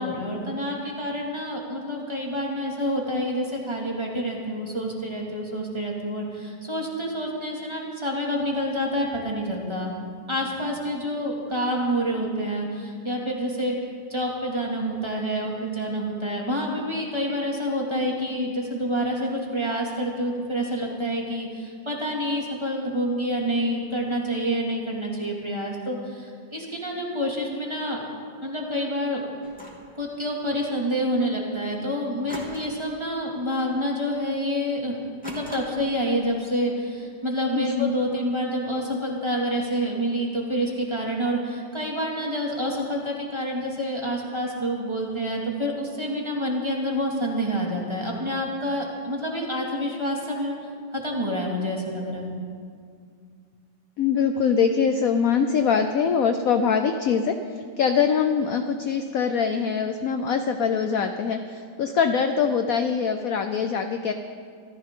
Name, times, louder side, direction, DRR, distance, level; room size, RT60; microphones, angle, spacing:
voice 1, 0.0-9.9 10.3-13.8 14.1-28.0 28.4-29.2 29.9-34.9 35.2-50.6 50.9-52.3, equal, 15° right, -2 dB, 2.2 m, -28 dB
sound 1, 29.4-29.9 32.3-32.9 33.2-33.6 33.9-34.0 35.2-36.0, equal, 5° left, 2.8 m, -41 dB
voice 2, 37.6-37.9 54.0-57.4 57.8-64.1, left 6 dB, 65° left, 7 dB, 0.9 m, -23 dB
24.5 x 14.5 x 3.8 m, 2.1 s
omnidirectional pair, 2.1 m